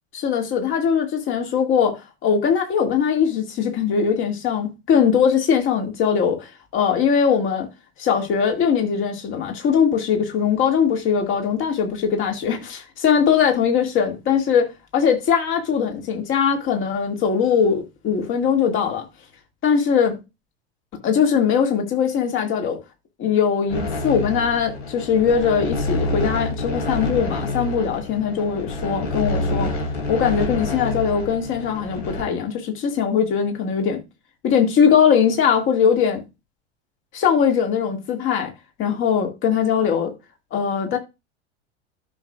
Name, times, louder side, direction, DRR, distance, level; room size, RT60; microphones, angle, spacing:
voice 1, 0.1-7.7 8.0-19.0 19.6-20.2 21.0-22.8 23.2-29.7 30.1-34.0 34.4-36.2 37.1-38.5 38.8-40.1 40.5-41.0, left 7 dB, 35° left, 2.2 m, -21 dB
sound 1, 23.7-32.2, left 2 dB, 65° left, 2.6 m, -27 dB
12.5 x 6.1 x 2.4 m
figure-of-eight pair, 80°, 34 cm